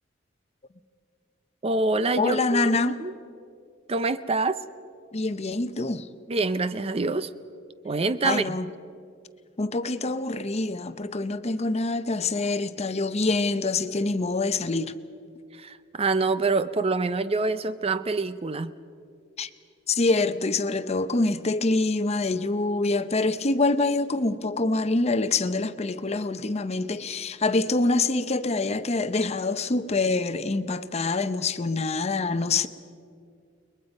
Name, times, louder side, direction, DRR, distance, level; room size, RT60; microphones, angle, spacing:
voice 1, 1.6-3.1 3.9-4.6 6.3-7.3 7.8-8.6 15.5-18.7, right 3 dB, 30° right, 0.6 m, -26 dB
voice 2, 2.2-3.0 5.1-6.1 8.2-8.7 9.6-14.9 19.4-19.5 19.9-32.7, left 3 dB, 35° left, 0.7 m, -25 dB
30.0 x 21.5 x 5.3 m
head